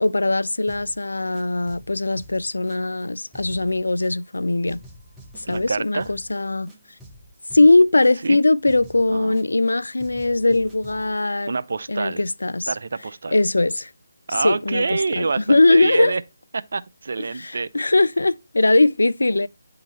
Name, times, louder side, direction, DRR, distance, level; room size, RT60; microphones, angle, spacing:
voice 1, 0.0-4.8 5.3-6.7 7.5-11.5 11.9-12.7 13.3-13.9 14.4-16.1 17.4-19.5, left 2 dB, 80° left, 0.5 m, -20 dB
sound 1, 0.7-1.0 1.3-3.0 3.3-4.4 4.7-6.4 6.7-8.4 8.7-9.7 10.0-11.2, equal, 5° right, 1.1 m, -47 dB
voice 2, 5.5-6.1 8.2-8.4 9.1-9.4 11.5-12.2 12.7-13.4 14.3-16.2 16.5-17.7, right 4 dB, 60° right, 0.6 m, -26 dB
10.0 x 3.8 x 4.2 m
figure-of-eight pair, 155°, 0 cm